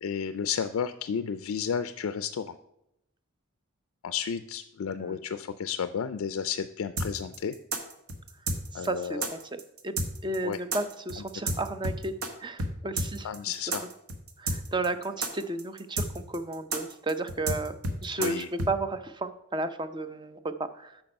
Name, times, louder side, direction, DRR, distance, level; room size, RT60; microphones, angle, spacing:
voice 1, 0.0-2.6 4.0-7.5 8.7-9.3 10.4-10.6 13.2-13.8 18.2-18.5, left 7 dB, 70° left, 11 dB, 0.4 m, -32 dB
sound 1, 7.0-12.3 12.6-12.7 13.0-18.7, right 2 dB, 75° right, 1.1 m, -31 dB
voice 2, 8.7-9.9 10.2-12.1 12.4-13.3 14.4-17.8 18.0-21.0, right 2 dB, 20° right, 11 dB, 0.5 m, -33 dB
8.7 x 5.8 x 5.3 m, 0.83 s
head